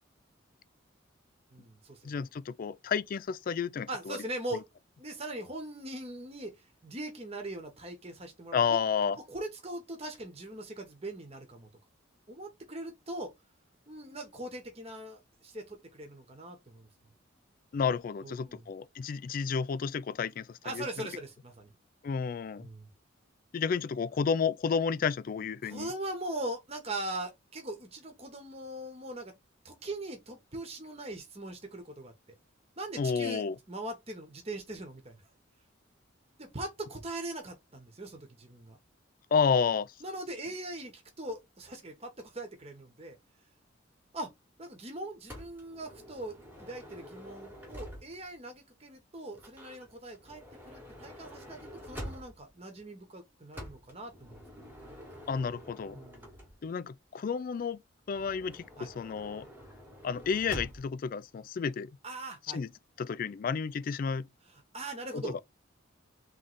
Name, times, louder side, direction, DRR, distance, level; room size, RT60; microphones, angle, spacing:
voice 1, 1.5-2.2 3.9-4.6 5.0-8.8 9.2-11.7 12.3-13.3 13.9-16.9 18.2-18.6 20.6-21.7 22.6-22.9 25.6-29.3 29.6-32.1 32.8-35.2 36.4-38.8 40.0-43.2 44.1-44.3 44.6-54.7 55.8-56.3 58.8-58.9 62.0-62.6 64.5-65.4, right 1 dB, 30° right, 1.1 m, -41 dB
voice 2, 2.0-4.2 8.5-9.2 17.7-21.1 22.0-22.7 23.5-25.9 33.0-33.6 39.3-39.9 55.3-56.0 56.6-57.8 58.1-59.5 60.0-61.9 62.5-62.7 63.0-64.3 65.1-65.4, left 6 dB, 45° left, 0.3 m, -31 dB
Motor vehicle (road) / Sliding door, 45.3-48.4 49.3-52.6 53.5-56.8 58.1-61.0, equal, 10° right, 1.3 m, -47 dB
3.6 x 3.2 x 3.9 m
head